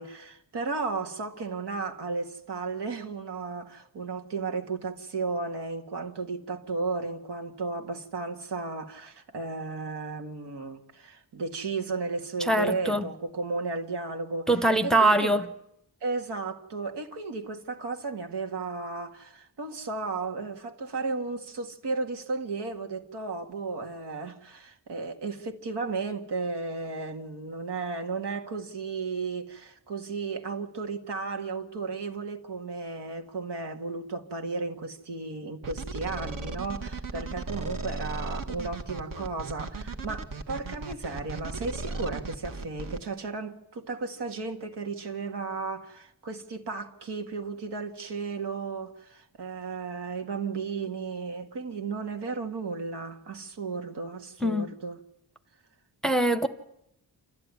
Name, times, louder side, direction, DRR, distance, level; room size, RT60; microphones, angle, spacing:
voice 1, 0.0-15.5 16.0-55.0, right 4 dB, 85° right, 2.1 m, -34 dB
voice 2, 12.5-13.0 14.5-15.4 54.4-54.7 56.0-56.5, right 1 dB, ahead, 0.9 m, -23 dB
sound 1, 35.6-43.0, right 3 dB, 55° right, 1.6 m, -36 dB
27.5 x 13.5 x 9.6 m
wide cardioid pair, 145°, 40 cm